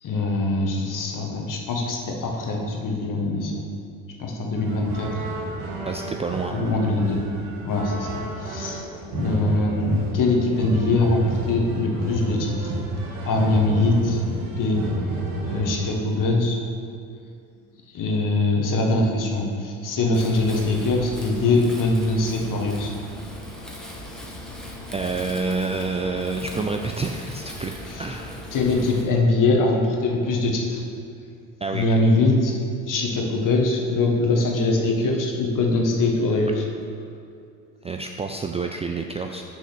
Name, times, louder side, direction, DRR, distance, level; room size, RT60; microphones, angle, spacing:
voice 1, 0.0-3.6 4.2-5.2 6.5-7.2 7.6-8.8 9.1-12.7 13.2-14.8 15.4-16.6 17.9-22.9 27.9-28.1 28.5-30.8 31.7-32.5 32.8-36.6, left 2 dB, 50° left, 1 dB, 1.5 m, -22 dB
sound 1, 4.6-15.9, right 1 dB, 55° right, 1.9 m, -30 dB
voice 2, 5.9-6.6 24.9-28.5 31.6-31.9 37.8-39.4, right 4 dB, 15° right, 3 dB, 0.3 m, -28 dB
Wind, 20.1-29.0, left 1 dB, ahead, 1.3 m, -38 dB
6.6 x 4.8 x 6.2 m, 2.4 s
hypercardioid pair, 70°, 41 cm